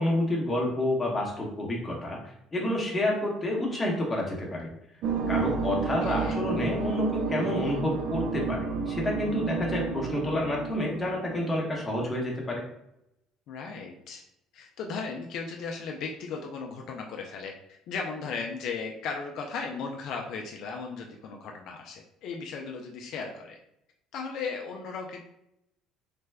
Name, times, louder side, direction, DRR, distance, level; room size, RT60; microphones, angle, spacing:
voice 1, 0.0-4.7 5.3-12.6, left 1 dB, 15° left, -2 dB, 0.9 m, -29 dB
sound 1, 5.0-12.0, right 5 dB, 55° right, 0.4 m, -31 dB
voice 2, 5.8-6.4 13.5-14.2 14.5-17.5 17.9-23.6 24.1-25.2, left 5 dB, 60° left, 1 dB, 0.4 m, -36 dB
3.2 x 2.2 x 3.3 m, 0.80 s
cardioid pair, 125°, 0 cm